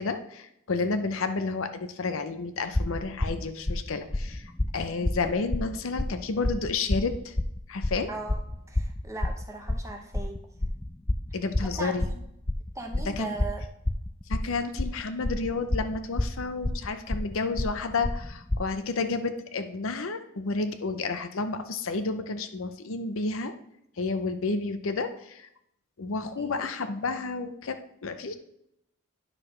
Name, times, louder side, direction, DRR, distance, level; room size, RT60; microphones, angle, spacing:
voice 1, 0.0-7.4 7.7-8.1 11.3-12.0 13.2-13.3 14.3-23.5 24.0-25.5 26.0-28.4, left 3 dB, 60° left, 8 dB, 0.6 m, -31 dB
sound 1, 2.7-18.6, left 1 dB, 10° left, 0.3 m, -29 dB
voice 2, 8.1-8.4 8.7-10.5 11.5-12.2 12.7-13.6 26.4-26.7, right 2 dB, 15° right, 3 dB, 0.8 m, -39 dB
9.9 x 6.2 x 3.2 m, 0.78 s
head